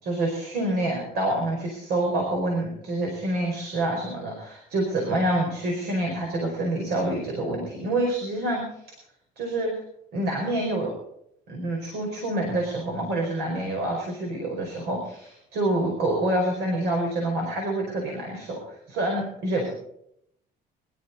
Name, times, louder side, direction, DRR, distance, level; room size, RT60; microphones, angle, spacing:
voice 1, 0.0-8.8 9.4-9.7 10.1-10.9 11.5-19.7, right 1 dB, 75° right, 0 dB, 4.8 m, -27 dB
23.0 x 12.5 x 4.1 m, 0.75 s
cardioid pair, 110°, 17 cm